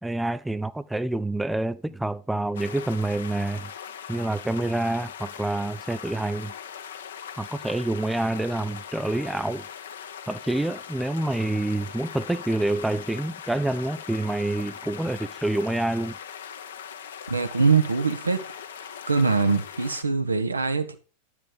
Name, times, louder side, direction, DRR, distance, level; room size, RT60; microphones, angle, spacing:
voice 1, 0.0-3.7 4.1-6.5 7.4-9.7 10.3-16.2, right 2 dB, 5° right, 0.4 m, -27 dB
sound 1, 2.5-20.0, left 8 dB, 60° left, 1.1 m, -40 dB
voice 2, 17.3-18.4 19.1-20.9, right 4 dB, 80° right, 1.2 m, -23 dB
10.5 x 7.3 x 4.9 m
figure-of-eight pair, 90°, 0 cm